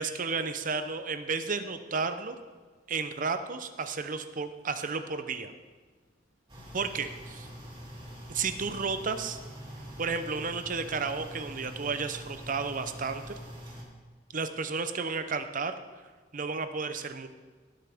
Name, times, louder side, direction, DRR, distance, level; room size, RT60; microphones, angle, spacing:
voice 1, 0.0-2.4 2.9-5.5 6.7-7.5 8.3-9.4 10.0-13.3 14.3-15.7 16.3-17.3, right 4 dB, 45° right, 9 dB, 0.7 m, -32 dB
sound 1, 6.5-13.8, equal, 25° right, 2.7 m, -44 dB
17.0 x 7.6 x 3.6 m, 1.5 s
head